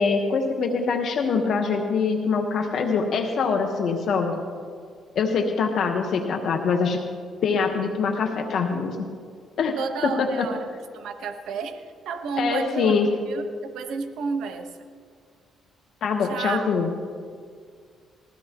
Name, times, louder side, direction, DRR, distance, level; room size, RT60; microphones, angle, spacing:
voice 1, 0.0-4.3 5.1-7.0 7.4-9.0 9.6-9.8 10.0-10.5 12.4-13.1 16.0-16.9, left 5 dB, 65° left, 2 dB, 1.2 m, -24 dB
voice 2, 9.8-10.6 10.9-12.9 13.3-14.9 16.3-16.6, right 5 dB, 80° right, 6 dB, 1.2 m, -31 dB
20.5 x 15.5 x 3.0 m, 2.1 s
cardioid pair, 90°, 0 cm